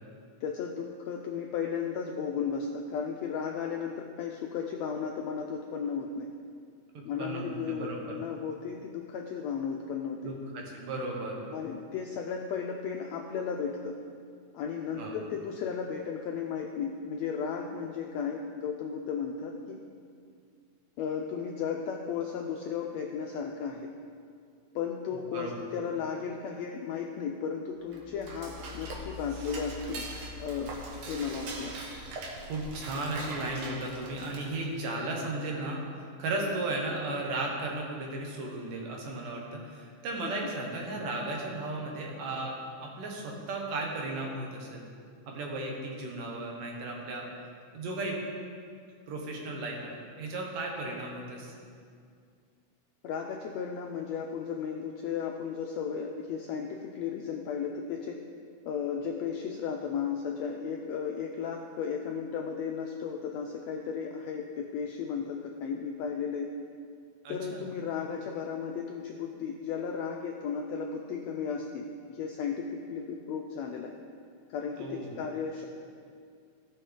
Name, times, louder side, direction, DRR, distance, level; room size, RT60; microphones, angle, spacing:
voice 1, 0.4-6.3 7.0-10.3 11.5-14.0 14.5-19.8 21.0-23.9 24.7-30.1 30.4-30.7 31.1-31.8 36.4-36.5 40.2-40.5 53.0-58.2 58.7-66.5 67.3-73.9 74.5-75.7, left 6 dB, 85° left, 2 dB, 1.5 m, -35 dB
voice 2, 7.2-8.1 10.2-11.4 15.0-15.2 25.3-25.6 32.4-35.8 36.2-42.6 42.8-44.9 45.3-47.3 47.7-48.2 49.1-51.5 67.2-67.7 74.8-75.2, right 2 dB, 80° right, -1 dB, 3.1 m, -35 dB
Dishes pots and pans / Cutlery silverware, 27.8-34.7, right 1 dB, 60° right, 2.1 m, -41 dB
17.0 x 6.7 x 3.8 m, 2.2 s
omnidirectional pair, 3.7 m